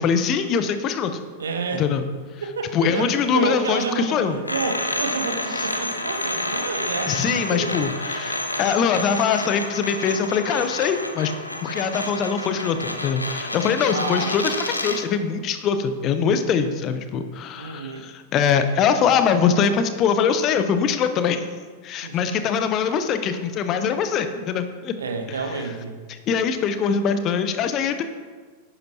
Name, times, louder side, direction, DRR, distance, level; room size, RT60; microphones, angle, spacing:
voice 1, 0.0-1.2 1.8-2.0 2.7-4.4 5.5-5.6 7.1-11.3 11.6-21.5 21.8-24.9 25.3-25.6 26.1-28.0, left 6 dB, 35° left, 9 dB, 0.8 m, -23 dB
voice 2, 1.4-1.9 2.4-7.2 7.5-7.7 13.9-14.5 17.6-18.0 22.0-22.4 25.0-26.0, right 4 dB, 70° right, 5 dB, 1.1 m, -29 dB
sound 1, 4.4-15.1, left 1 dB, 85° left, 0.8 m, -29 dB
10.5 x 9.9 x 2.9 m, 1.5 s
figure-of-eight pair, 90°, 0 cm